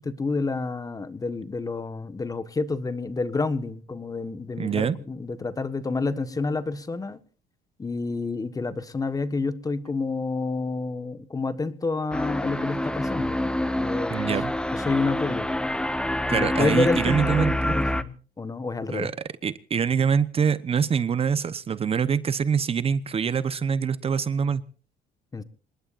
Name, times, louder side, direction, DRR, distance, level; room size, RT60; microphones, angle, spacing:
voice 1, 0.0-7.2 7.8-14.2 14.7-15.5 16.3-19.1 25.3-25.4, left 3 dB, 20° left, 12 dB, 1.5 m, -29 dB
voice 2, 4.6-5.0 14.1-14.5 16.3-17.7 18.9-19.1 19.4-24.6, right 6 dB, 35° right, 14 dB, 1.0 m, -24 dB
sound 1, 12.1-18.0, left 1 dB, 5° left, 1.0 m, -27 dB
27.0 x 20.0 x 2.6 m, 0.40 s
cardioid pair, 110°, 17 cm